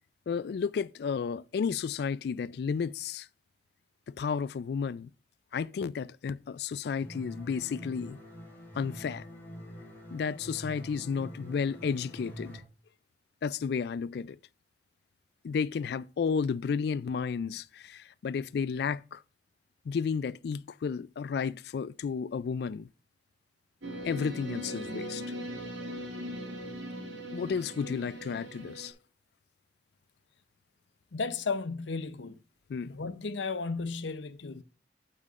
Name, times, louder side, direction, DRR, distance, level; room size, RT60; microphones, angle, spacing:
voice 1, 0.3-3.3 4.1-5.1 5.5-8.2 8.8-9.2 10.1-12.6 13.4-14.4 15.4-19.2 19.9-22.9 24.0-25.2 27.3-28.9 32.7-32.9, left 6 dB, 60° left, 0.3 m, -32 dB
sound 1, 7.0-12.6, equal, 10° left, 2.3 m, -45 dB
sound 2, 23.8-28.9, equal, 85° right, 1.9 m, -39 dB
voice 2, 31.1-32.4 32.9-34.6, left 4 dB, 80° left, 0.7 m, -34 dB
8.6 x 8.3 x 2.4 m
head